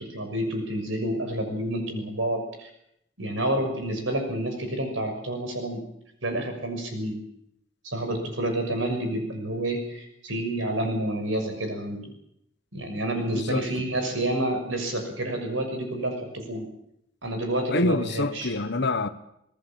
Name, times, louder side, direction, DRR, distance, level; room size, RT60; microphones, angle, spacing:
voice 1, 0.0-2.7 3.2-5.8 6.2-7.2 7.8-12.1 12.7-16.7 17.2-18.5, right 1 dB, 65° right, 6.4 m, -29 dB
voice 2, 13.3-13.8 17.7-19.1, left 2 dB, 55° left, 1.3 m, -26 dB
26.0 x 19.5 x 7.3 m
head